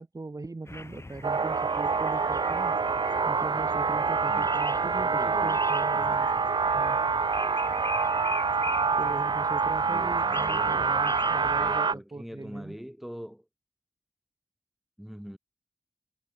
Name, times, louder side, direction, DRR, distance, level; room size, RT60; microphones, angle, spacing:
voice 1, 0.0-6.3 6.6-7.0 9.0-12.8, right 3 dB, 40° right, 1.8 m, -40 dB
sound 1, 0.7-11.8, left 2 dB, 30° left, 2.6 m, -41 dB
sound 2, 1.2-11.9, right 5 dB, 60° right, 0.5 m, -26 dB
voice 2, 4.2-4.5 5.0-6.6 9.9-13.5 15.0-15.4, equal, ahead, 5.3 m, -43 dB
wide cardioid pair, 85°, 9 cm